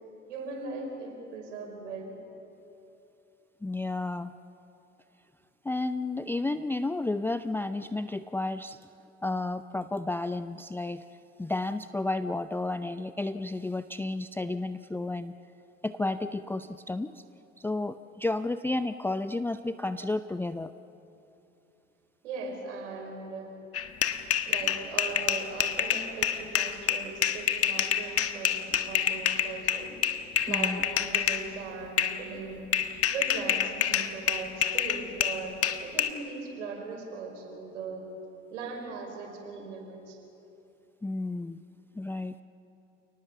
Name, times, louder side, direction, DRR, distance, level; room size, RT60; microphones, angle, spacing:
voice 1, 0.3-2.1 22.2-23.5 24.5-30.0 30.5-32.7 33.1-38.1 38.5-40.2, right 4 dB, 80° right, 2 dB, 5.5 m, -39 dB
voice 2, 3.6-4.3 5.6-8.8 9.2-11.0 11.4-15.4 15.8-17.2 17.6-20.7 29.0-29.2 30.5-30.8 41.0-41.6 41.9-42.4, left 2 dB, 5° left, 11 dB, 0.5 m, -32 dB
sound 1, 23.7-31.4 32.0-32.2 32.7-36.1, left 9 dB, 40° left, 1.5 m, -27 dB
29.0 x 19.5 x 7.4 m, 2.9 s
hypercardioid pair, 75°, 36 cm